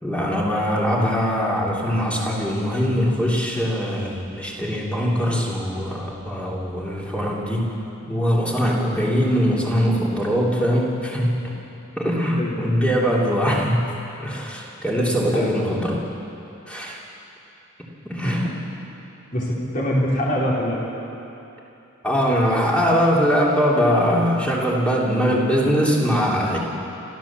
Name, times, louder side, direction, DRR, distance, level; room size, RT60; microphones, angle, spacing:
voice 1, 0.0-7.7 8.1-11.5 12.0-16.0 16.7-17.0 18.0-18.4 22.0-26.6, equal, 5° left, -4 dB, 3.0 m, -22 dB
voice 2, 12.3-12.7 15.3-15.5 18.2-18.5 19.3-20.8, equal, 40° left, -4 dB, 4.0 m, -24 dB
29.0 x 14.0 x 7.4 m, 2.9 s
head